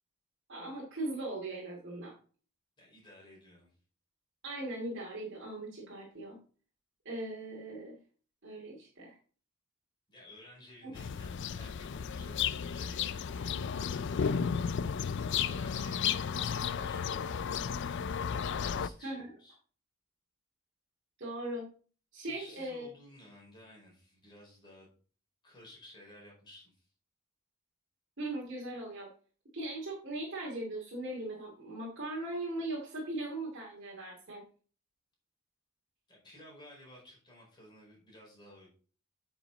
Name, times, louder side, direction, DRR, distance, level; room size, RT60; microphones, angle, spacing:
voice 1, 0.5-2.1 4.4-6.4 7.0-7.9 8.4-9.1 10.8-10.9 19.0-19.3 21.2-21.7 22.1-22.9 28.2-29.1 29.5-34.4, right 2 dB, 60° right, -4 dB, 2.3 m, -39 dB
voice 2, 2.8-3.7 10.1-14.3 15.4-17.4 18.5-19.6 22.3-24.9 25.4-26.9 36.1-38.7, left 1 dB, 20° left, -3 dB, 4.6 m, -55 dB
sound 1, 10.9-18.9, left 7 dB, 55° left, 0.4 m, -33 dB
9.3 x 6.0 x 3.9 m, 0.40 s
head